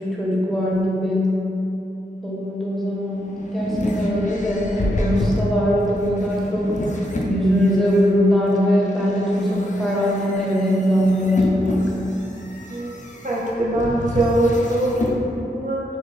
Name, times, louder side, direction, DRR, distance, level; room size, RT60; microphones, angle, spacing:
voice 1, 0.0-1.4 2.2-6.7 7.2-12.0, equal, ahead, -6 dB, 0.8 m, -21 dB
sound 1, 2.9-8.0 8.6-15.2, left 1 dB, 40° left, 0.4 m, -29 dB
voice 2, 13.2-14.9 15.4-15.8, right 1 dB, 45° right, -6 dB, 0.5 m, -21 dB
4.0 x 2.7 x 3.2 m, 2.9 s
wide cardioid pair, 60°, 18 cm